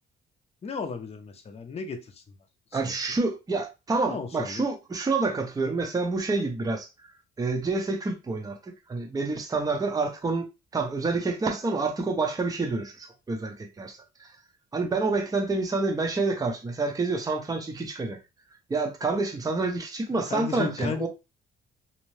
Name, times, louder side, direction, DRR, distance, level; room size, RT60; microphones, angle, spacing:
voice 1, 0.6-2.2 2.7-2.9 4.0-4.6 20.1-21.1, left 5 dB, 30° left, 0.5 m, -35 dB
voice 2, 2.7-6.9 7.4-10.5 10.7-14.3 14.7-18.2 18.7-21.1, right 3 dB, 20° right, 0.6 m, -28 dB
2.7 x 2.0 x 3.1 m
cardioid pair, 90°, 20 cm